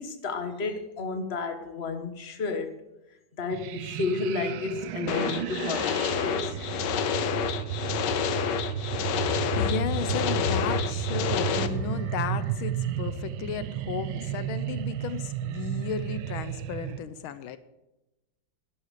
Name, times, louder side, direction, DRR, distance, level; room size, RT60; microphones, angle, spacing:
voice 1, 0.0-2.7 3.3-6.6, left 4 dB, 35° left, 6 dB, 1.5 m, -32 dB
sound 1, 3.5-17.0, right 12 dB, 80° right, 1.4 m, -33 dB
sound 2, 5.1-11.7, left 8 dB, 65° left, 1.4 m, -29 dB
voice 2, 9.5-17.6, left 8 dB, 80° left, 12 dB, 1.6 m, -33 dB
sound 3, 11.5-15.1, left 1 dB, 60° right, 6.4 m, -44 dB
12.5 x 11.0 x 6.6 m, 0.94 s
omnidirectional pair, 2.2 m